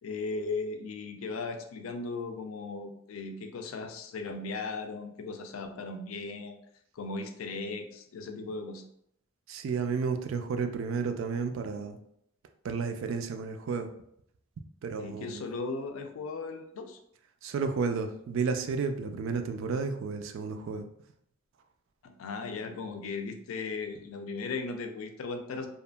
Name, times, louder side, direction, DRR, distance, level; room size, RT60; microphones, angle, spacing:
voice 1, 0.0-6.6 6.9-8.8 15.0-17.0 22.0-25.7, left 3 dB, 85° left, 6 dB, 0.4 m, -37 dB
voice 2, 9.5-12.0 12.6-13.9 14.8-15.4 17.4-20.9, right 5 dB, 70° right, 7 dB, 0.3 m, -32 dB
2.8 x 2.4 x 2.2 m, 0.71 s
head